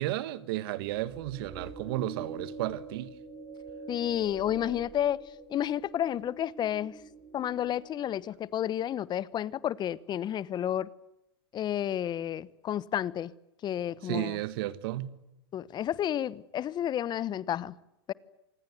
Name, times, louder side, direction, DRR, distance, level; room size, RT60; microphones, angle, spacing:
voice 1, 0.0-3.1 14.0-15.2, right 15 dB, 60° right, 1.7 m, -33 dB
sound 1, 0.9-8.3, right 3 dB, 25° right, 5.4 m, -46 dB
voice 2, 3.9-5.2 5.5-6.9 7.3-10.9 11.5-13.3 13.6-14.4 15.5-17.7 18.1-18.2, left 11 dB, 30° left, 1.0 m, -31 dB
26.5 x 20.5 x 9.5 m
hypercardioid pair, 100°, 14 cm